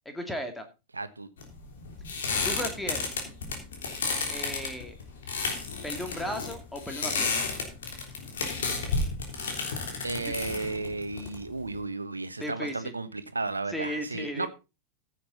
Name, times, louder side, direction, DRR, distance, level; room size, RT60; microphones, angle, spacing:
voice 1, 0.1-0.7 2.4-3.1 4.3-4.9 5.8-7.5 12.4-12.9 13.7-14.5, equal, 5° left, 2.4 m, -35 dB
voice 2, 0.9-1.3 10.0-14.5, right 3 dB, 80° right, 1.1 m, -33 dB
sound 1, 1.4-11.8, left 4 dB, 65° left, 3.4 m, -32 dB
15.0 x 7.9 x 4.1 m
figure-of-eight pair, 90°, 0 cm